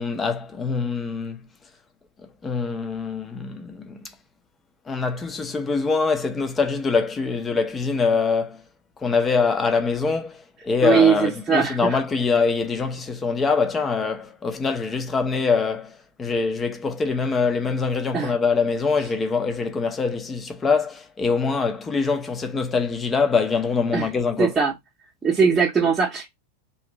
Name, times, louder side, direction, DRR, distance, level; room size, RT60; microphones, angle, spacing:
voice 1, 0.0-1.4 2.4-4.1 4.9-8.6 9.0-24.5, left 4 dB, 20° left, 0.6 m, -24 dB
voice 2, 10.8-12.0 18.1-18.4 23.9-24.1 24.4-24.7 25.2-26.3, right 6 dB, 15° right, 0.8 m, -20 dB
2.9 x 2.6 x 3.8 m
figure-of-eight pair, 90°, 0 cm